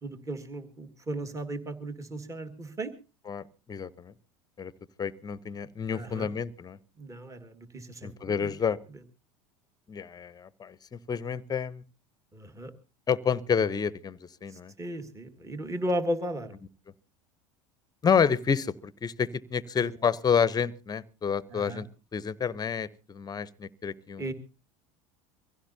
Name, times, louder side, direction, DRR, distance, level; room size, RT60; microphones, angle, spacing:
voice 1, 0.0-2.9 5.9-6.3 7.0-8.5 12.3-12.7 14.5-16.5 19.8-19.9 21.5-21.8 24.2-24.3, right 1 dB, 20° right, 1.8 m, -35 dB
voice 2, 3.3-4.1 4.6-4.7 5.0-6.8 8.0-8.8 9.9-11.8 13.1-14.7 18.0-21.9 22.1-24.2, left 6 dB, 25° left, 0.8 m, -29 dB
23.5 x 16.0 x 2.7 m
hypercardioid pair, 90°, 17 cm